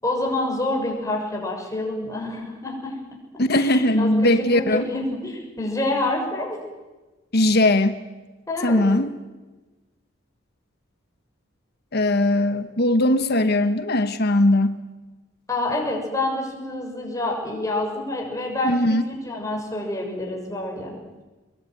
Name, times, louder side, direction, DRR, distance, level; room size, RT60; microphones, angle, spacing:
voice 1, 0.0-3.2 3.5-6.6 8.5-8.8 15.5-20.9, left 2 dB, 15° left, 0 dB, 6.8 m, -27 dB
voice 2, 3.4-4.9 7.3-8.0 8.6-9.1 11.9-14.8 18.6-19.0, left 1 dB, 55° left, 10 dB, 1.3 m, -19 dB
25.0 x 22.0 x 9.4 m, 1.2 s
head